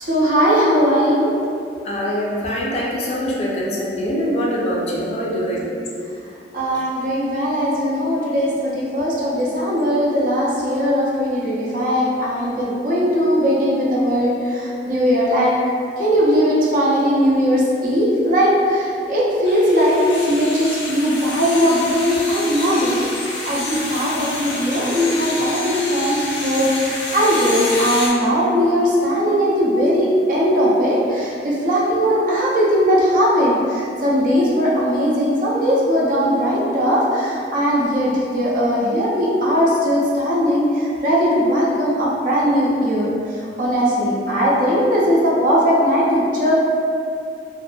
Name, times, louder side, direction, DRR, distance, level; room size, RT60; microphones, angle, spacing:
voice 1, 0.0-1.3 6.5-15.5 16.0-43.1 43.6-46.5, equal, 50° right, -5 dB, 0.5 m, -19 dB
voice 2, 1.8-5.7 6.6-6.8, equal, 35° left, -4 dB, 0.4 m, -23 dB
sound 1, 19.5-28.1, left 2 dB, 90° left, 0.5 m, -28 dB
2.6 x 2.4 x 2.2 m, 2.5 s
head